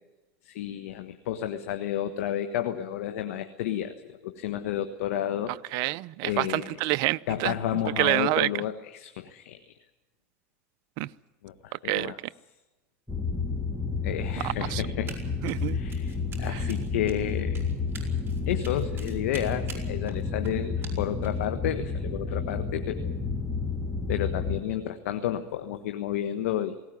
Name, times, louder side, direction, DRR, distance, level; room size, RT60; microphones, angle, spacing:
voice 1, 0.4-5.6 6.2-6.8 7.3-9.7 11.4-12.2 14.0-15.1 15.7-17.6 18.5-23.2 24.1-26.8, left 11 dB, 80° left, 1.5 m, -31 dB
voice 2, 5.7-7.5 8.0-8.5 11.0-11.1 11.9-12.1 14.4-14.8 15.4-15.8, right 19 dB, 60° right, 0.7 m, -27 dB
sound 1, 13.1-24.6, left 4 dB, ahead, 2.0 m, -31 dB
Run, 15.1-15.2 15.5-21.4, right 6 dB, 30° right, 6.8 m, -46 dB
20.0 x 18.0 x 9.4 m
supercardioid pair, 110°, 8 cm